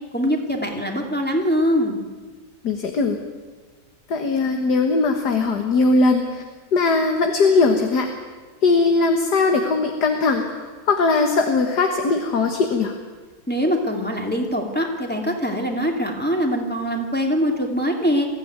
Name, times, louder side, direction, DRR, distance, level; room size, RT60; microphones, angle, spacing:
voice 1, 0.1-2.1 13.5-18.3, equal, 5° left, 0 dB, 2.4 m, -23 dB
voice 2, 2.6-3.2 4.1-6.4 6.7-8.1 8.6-12.9, left 3 dB, 50° left, 4 dB, 1.9 m, -20 dB
22.5 x 15.0 x 9.6 m, 1.4 s
omnidirectional pair, 2.3 m